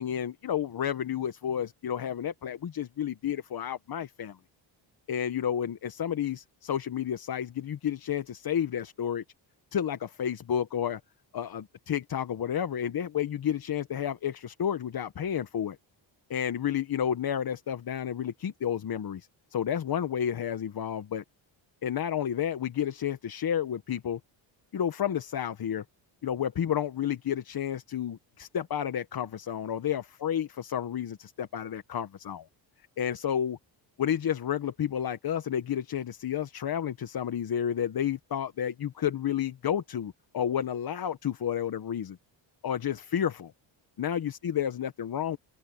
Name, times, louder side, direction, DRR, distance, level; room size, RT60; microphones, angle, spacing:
voice 1, 0.0-4.4 5.1-9.2 9.7-11.0 11.3-15.8 16.3-21.2 21.8-24.2 24.7-25.8 26.2-32.5 33.0-33.6 34.0-42.2 42.6-43.5 44.0-45.4, left 9 dB, 50° left, 1.3 m, -31 dB
open air
cardioid pair, 95°, 47 cm